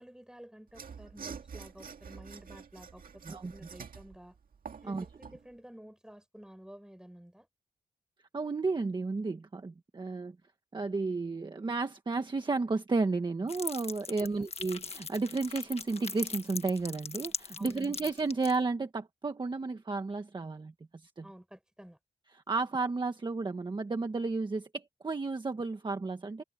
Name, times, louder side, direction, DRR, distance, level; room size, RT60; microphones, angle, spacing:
voice 1, 0.0-4.4 4.8-7.5 14.1-14.5 17.6-18.1 21.2-22.0, equal, 5° right, 5.9 m, -52 dB
Mechanisms / Sawing, 0.7-5.4, right 6 dB, 70° right, 2.1 m, -47 dB
voice 2, 8.3-10.3 10.7-20.7 21.0-21.2 22.5-26.4, right 3 dB, 30° right, 1.5 m, -32 dB
sound 1, 13.5-18.6, left 5 dB, 45° left, 1.2 m, -39 dB
open air
wide cardioid pair, 160°, 15 cm